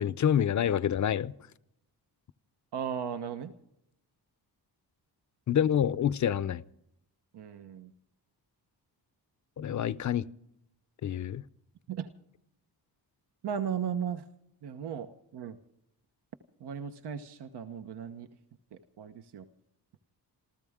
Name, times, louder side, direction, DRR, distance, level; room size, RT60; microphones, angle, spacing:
voice 1, 0.0-1.3 5.5-6.6 9.6-10.2 11.0-11.4, left 9 dB, 45° left, 0.6 m, -27 dB
voice 2, 2.7-3.5 7.3-7.9 11.9-12.1 13.4-14.2 14.6-15.6 16.6-18.3 18.7-19.5, right 8 dB, 75° right, 1.1 m, -36 dB
28.0 x 14.0 x 3.6 m
wide cardioid pair, 135°, 41 cm